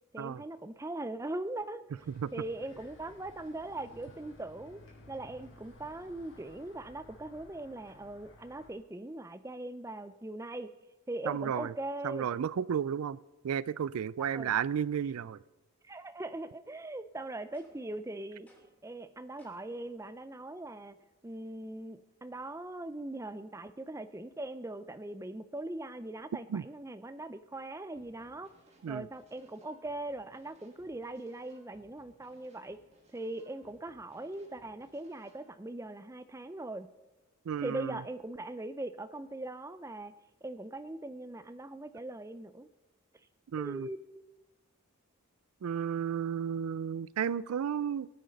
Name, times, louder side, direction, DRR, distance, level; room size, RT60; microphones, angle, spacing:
voice 1, 0.1-1.8 2.3-4.8 5.1-10.7 11.1-12.5 14.2-14.5 15.8-18.5 18.8-21.0 21.2-28.5 28.9-32.8 33.1-36.9 37.6-40.1 40.4-42.7 43.6-44.1, right 2 dB, 15° right, 0.4 m, -40 dB
sound 1, 2.0-8.7, left 1 dB, 70° left, 4.1 m, -56 dB
voice 2, 11.3-11.7 12.0-13.2 13.4-15.4 26.5-26.7 28.8-29.1 37.5-38.0 43.5-43.9 45.6-48.1, right 8 dB, 85° right, 0.4 m, -33 dB
sound 2, 17.5-18.0 18.5-18.9 19.4-19.8, equal, 5° left, 2.4 m, -64 dB
sound 3, 28.0-35.5, right 1 dB, 30° right, 1.9 m, -65 dB
17.5 x 9.4 x 5.2 m
head